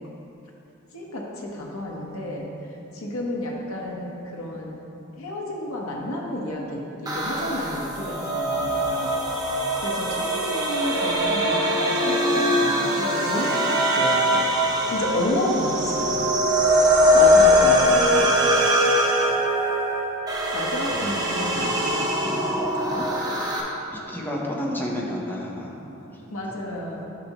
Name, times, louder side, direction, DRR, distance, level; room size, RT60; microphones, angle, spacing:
voice 1, 0.9-2.5 2.9-4.8 5.2-9.2 9.8-14.5 14.9-16.2 16.7-18.3 20.5-23.1 26.3-27.1, left 1 dB, 80° left, -2 dB, 1.1 m, -31 dB
sound 1, 7.1-23.6, equal, 20° right, 1.0 m, -22 dB
voice 2, 24.1-25.7 26.1-26.3, equal, 10° left, -3 dB, 0.9 m, -30 dB
10.0 x 5.6 x 3.0 m, 2.9 s
head